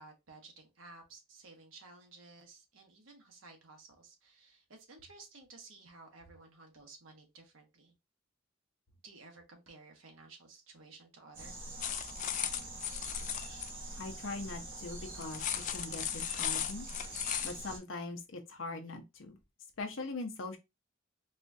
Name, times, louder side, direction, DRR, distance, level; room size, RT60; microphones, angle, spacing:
voice 1, 0.0-7.9 9.0-11.5, right 3 dB, 90° right, 1.1 m, -55 dB
sound 1, 11.3-17.8, right 2 dB, 70° right, 1.3 m, -45 dB
sound 2, 11.8-13.7 15.2-17.6, left 10 dB, 40° left, 0.3 m, -36 dB
voice 2, 14.0-16.9 17.4-19.4 19.8-20.6, left 3 dB, 80° left, 0.8 m, -41 dB
4.2 x 2.3 x 2.6 m
head